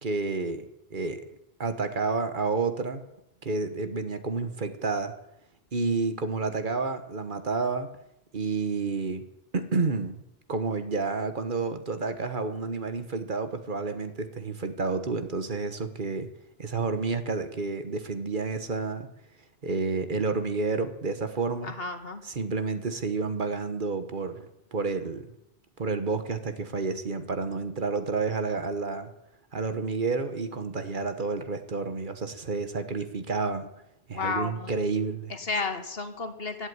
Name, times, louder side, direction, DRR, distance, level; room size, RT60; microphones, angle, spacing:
voice 1, 0.0-0.6 0.9-1.2 1.6-3.0 3.4-5.1 5.7-7.9 8.3-9.2 9.5-10.2 10.5-16.3 16.6-19.1 19.6-21.7 22.2-24.5 24.7-25.3 25.8-29.1 29.5-33.7 34.1-35.3, right 4 dB, 55° right, 10 dB, 1.3 m, -30 dB
voice 2, 21.6-22.2 34.1-34.7 35.3-36.7, left 4 dB, 70° left, 8 dB, 1.8 m, -32 dB
16.5 x 8.1 x 9.5 m, 0.84 s
omnidirectional pair, 1.0 m